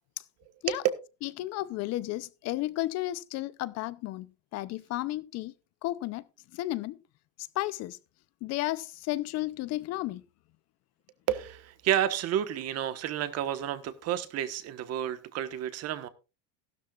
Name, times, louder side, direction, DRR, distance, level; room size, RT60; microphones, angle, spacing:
voice 1, 1.2-5.5 5.8-6.2 6.5-7.0 7.5-8.0 8.4-10.2, left 16 dB, 45° left, 0.7 m, -33 dB
voice 2, 11.3-16.1, right 10 dB, 40° right, 1.4 m, -30 dB
15.0 x 12.5 x 2.4 m
supercardioid pair, 135°, 37 cm